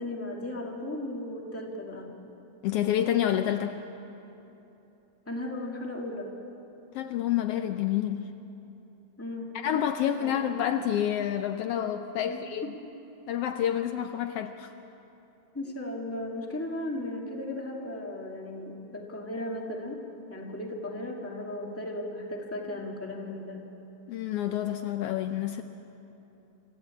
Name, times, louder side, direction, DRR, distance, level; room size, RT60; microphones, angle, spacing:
voice 1, 0.0-2.1 5.3-6.3 9.2-9.5 10.2-10.4 12.3-12.7 15.5-20.0 20.3-23.6, left 1 dB, 5° left, -1 dB, 1.8 m, -36 dB
voice 2, 2.6-3.8 6.9-8.3 9.5-12.7 13.3-14.7 24.1-25.6, left 10 dB, 90° left, 7 dB, 1.3 m, -28 dB
27.0 x 14.5 x 8.5 m, 3.0 s
omnidirectional pair, 3.5 m